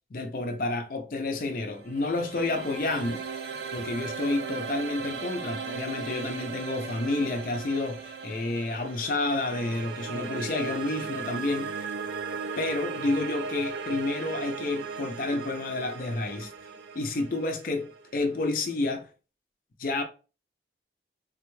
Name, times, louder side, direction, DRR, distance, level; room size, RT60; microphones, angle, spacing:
voice 1, 0.1-3.2 3.7-11.9 12.6-16.5 16.9-19.1 19.8-20.0, left 2 dB, 50° left, 0.5 m, -30 dB
sound 1, 1.6-18.7, right 5 dB, 80° right, 0.4 m, -37 dB
3.5 x 2.2 x 3.0 m
head